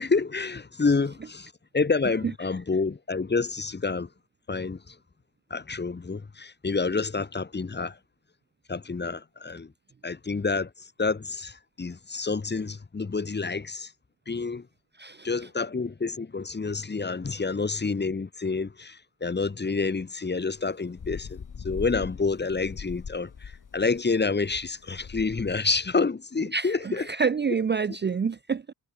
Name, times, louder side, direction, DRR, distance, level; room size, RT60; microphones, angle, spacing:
voice 1, 0.0-4.1 4.5-5.0 5.5-8.0 8.7-9.7 10.0-13.9 14.3-14.7 15.2-27.1, left 4 dB, 20° left, 1.9 m, -28 dB
sound 1, 20.5-25.6, left 6 dB, 40° left, 5.3 m, -41 dB
voice 2, 26.5-28.7, right 5 dB, 25° right, 0.7 m, -27 dB
cardioid pair, 115°, 46 cm